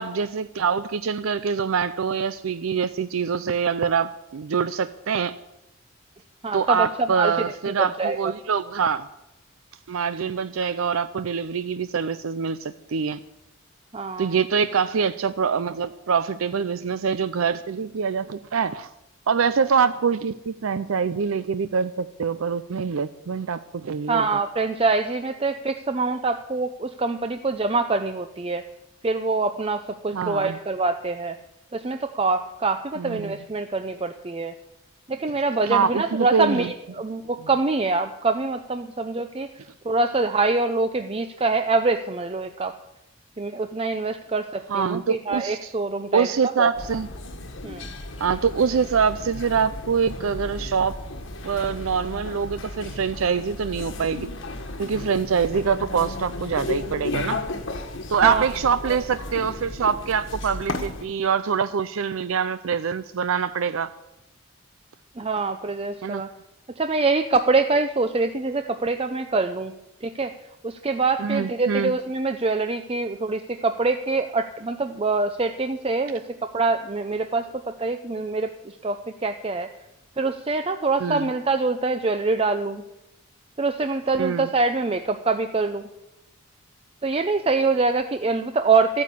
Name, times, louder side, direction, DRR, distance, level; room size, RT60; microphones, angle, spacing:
voice 1, 0.0-5.4 6.5-9.1 9.9-13.2 14.2-18.9 19.3-24.3 30.1-30.6 33.0-33.3 35.7-36.7 44.7-45.7 46.1-47.1 48.2-51.0 51.4-54.3 54.8-57.4 58.1-63.9 66.0-66.2 71.2-71.9 81.0-81.3 84.2-84.5, right 6 dB, 80° right, 13 dB, 0.5 m, -24 dB
voice 2, 6.4-7.4 7.8-8.3 13.9-14.4 24.1-28.7 29.0-31.4 31.7-34.5 35.1-39.5 39.8-42.7 43.4-46.7 47.6-47.9 58.2-58.4 65.2-66.3 66.8-69.7 70.0-70.3 70.6-79.7 80.2-82.8 83.6-85.9 87.0-89.0, right 3 dB, 25° right, 8 dB, 0.5 m, -25 dB
sound 1, 46.7-61.0, left 2 dB, 65° left, 1.6 m, -34 dB
13.5 x 9.6 x 8.3 m, 0.92 s
head